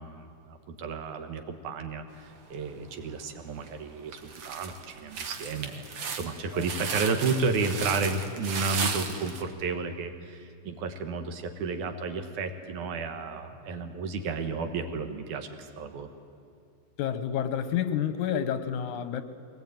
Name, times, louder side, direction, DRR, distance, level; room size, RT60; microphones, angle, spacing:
voice 1, 0.0-16.1, right 4 dB, 85° right, 7 dB, 2.9 m, -32 dB
sound 1, 2.5-3.1 3.6-3.7 4.1-9.4, right 5 dB, 55° right, 2.1 m, -35 dB
voice 2, 17.0-19.2, left 9 dB, 80° left, 11 dB, 2.4 m, -29 dB
22.5 x 18.5 x 9.2 m, 2.5 s
omnidirectional pair, 3.4 m